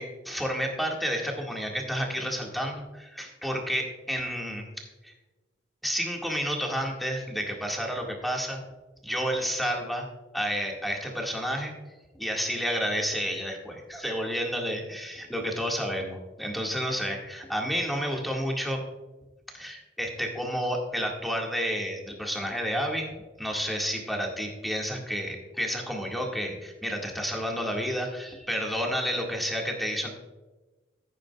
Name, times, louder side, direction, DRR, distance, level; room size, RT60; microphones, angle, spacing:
voice 1, 0.0-5.1 5.8-8.6 9.0-10.1 10.3-11.7 12.1-18.8 19.5-23.1 23.4-30.1, equal, ahead, -1 dB, 1.9 m, -30 dB
15.5 x 9.2 x 2.4 m, 1.2 s
head